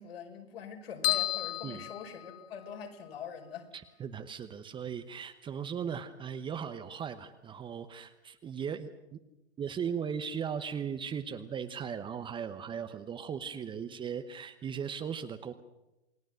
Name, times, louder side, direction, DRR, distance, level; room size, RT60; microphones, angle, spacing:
voice 1, 0.0-3.7, left 6 dB, 60° left, 4 dB, 4.8 m, -43 dB
sound 1, 1.0-2.8, left 17 dB, 25° left, 0.7 m, -33 dB
voice 2, 3.7-9.2 9.6-15.5, right 7 dB, 15° right, 10 dB, 1.0 m, -38 dB
28.5 x 19.5 x 6.5 m, 0.96 s
figure-of-eight pair, 115°, 33 cm